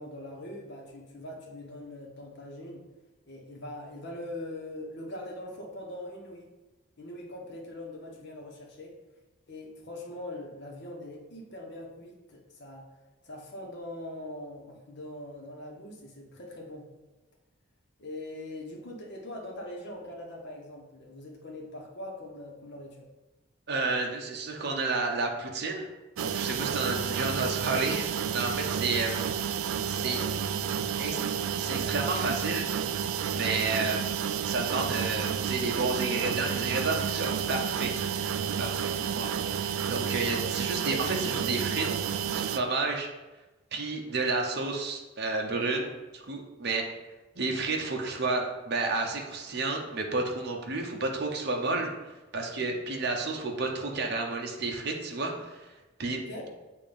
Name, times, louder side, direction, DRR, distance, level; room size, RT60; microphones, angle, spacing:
voice 1, 0.0-2.9 3.3-6.5 7.0-9.0 9.5-12.9 13.2-16.9 18.0-23.1 29.9-30.2 30.9-31.3 52.5-52.7 56.1-56.5, left 1 dB, 55° left, -1 dB, 1.0 m, -42 dB
voice 2, 23.7-25.9 26.2-29.3 29.9-30.2 31.0-31.2 31.6-32.7 33.3-34.1 34.4-37.9 38.6-41.9 42.3-43.1 43.7-46.9 47.4-51.9 52.3-55.7 56.0-56.2, right 3 dB, 50° right, 1 dB, 0.7 m, -31 dB
sound 1, 26.2-42.6, right 8 dB, 80° right, 0.3 m, -31 dB
7.1 x 2.5 x 5.2 m, 1.1 s
head